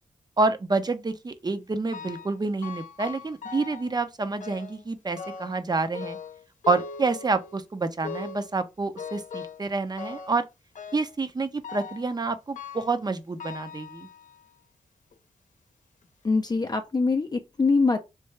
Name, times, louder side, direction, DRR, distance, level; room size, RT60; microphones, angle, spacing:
voice 1, 0.4-6.2 6.7-10.4 10.9-14.1, right 3 dB, 30° right, 0.6 m, -28 dB
sound 1, 1.9-2.4 2.6-3.9 4.4-4.8 5.2-5.6 5.9-7.6 8.0-8.5 9.0-9.7 10.0-10.4 10.8-11.2 11.6-12.1 12.6-13.0 13.4-14.5 15.1-15.2 16.0-16.1 16.6-16.7, left 5 dB, 70° left, 0.7 m, -40 dB
voice 2, 16.2-18.0, left 4 dB, 30° left, 0.5 m, -23 dB
3.3 x 2.6 x 3.2 m
cardioid pair, 55°, 13 cm